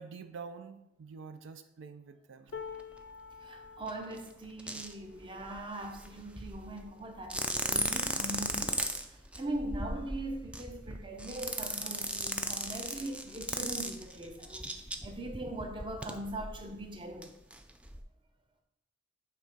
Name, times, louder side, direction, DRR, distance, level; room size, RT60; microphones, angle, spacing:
voice 1, 0.0-2.6 9.1-9.2, right 5 dB, 80° right, 0.4 m, -47 dB
sound 1, 2.5-8.7 9.2-9.4 9.7-10.5 11.5-11.6, left 6 dB, 65° left, 0.4 m, -50 dB
sound 2, 2.8-2.9 3.8-4.2 4.6-4.9 5.2-6.8 7.2-16.8 17.2-17.3 17.5-18.0, right 1 dB, 5° right, 0.3 m, -36 dB
voice 2, 3.4-8.8 9.1-17.3, right 1 dB, 25° right, 0.7 m, -41 dB
7.9 x 3.5 x 4.5 m
head